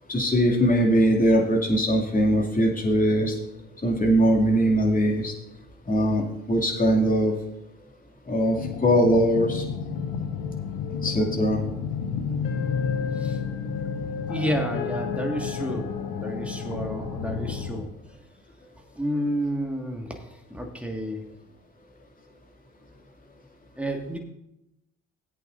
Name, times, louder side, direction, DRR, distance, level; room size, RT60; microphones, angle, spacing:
voice 1, 0.1-3.3 3.8-5.3 5.9-7.3 8.3-9.6 11.0-11.6, equal, 20° left, -1 dB, 2.5 m, -21 dB
sound 1, 8.5-17.8, left 6 dB, 60° left, 1.1 m, -31 dB
voice 2, 14.3-17.9 18.9-20.2 20.5-21.2 23.8-24.2, equal, 5° right, 3 dB, 1.8 m, -30 dB
18.5 x 8.3 x 2.6 m, 0.89 s
figure-of-eight pair, 45°, 40 cm